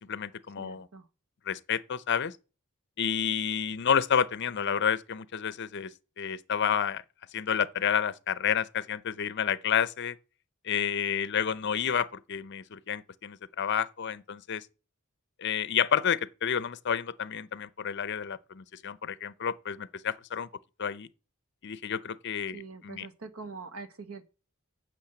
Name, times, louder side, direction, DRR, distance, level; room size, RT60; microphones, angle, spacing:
voice 1, 0.0-0.9 1.5-2.3 3.0-5.9 6.2-7.0 7.3-10.2 10.6-14.7 15.4-20.5 20.8-21.1 21.6-22.6 22.8-23.1, left 8 dB, 55° left, 0.6 m, -30 dB
voice 2, 0.6-1.1 22.5-24.2, right 4 dB, 75° right, 1.3 m, -43 dB
8.7 x 6.4 x 8.0 m
head